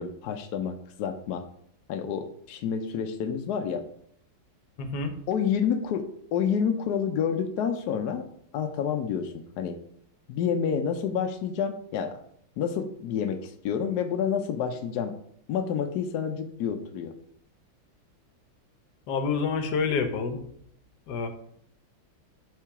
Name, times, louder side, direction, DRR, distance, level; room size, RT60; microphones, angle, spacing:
voice 1, 0.0-1.4 1.9-3.8 5.3-6.0 6.3-8.2 8.5-9.8 10.3-12.2 12.6-15.1 15.5-17.1, left 7 dB, 85° left, 6 dB, 0.8 m, -29 dB
voice 2, 4.8-5.1 19.1-20.4 21.1-21.3, left 5 dB, 65° left, 8 dB, 1.1 m, -27 dB
6.2 x 3.8 x 4.7 m, 0.67 s
omnidirectional pair, 2.4 m